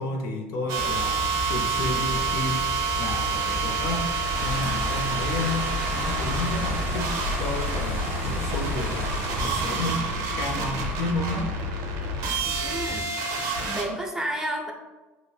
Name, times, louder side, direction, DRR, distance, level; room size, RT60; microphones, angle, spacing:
voice 1, 0.0-2.7 3.0-4.1 4.4-7.1 7.4-11.5, left 2 dB, 60° left, 1 dB, 0.6 m, -31 dB
sound 1, 0.7-13.8, right 4 dB, 65° right, 0.6 m, -28 dB
sound 2, 0.8-13.0, left 3 dB, 45° left, 1.3 m, -36 dB
sound 3, 4.3-9.6, left 1 dB, 80° left, 1.0 m, -33 dB
voice 2, 12.6-13.1 13.7-14.7, right 1 dB, 5° right, 0 dB, 0.5 m, -30 dB
5.0 x 2.1 x 2.3 m, 1.2 s
hypercardioid pair, 70°, 7 cm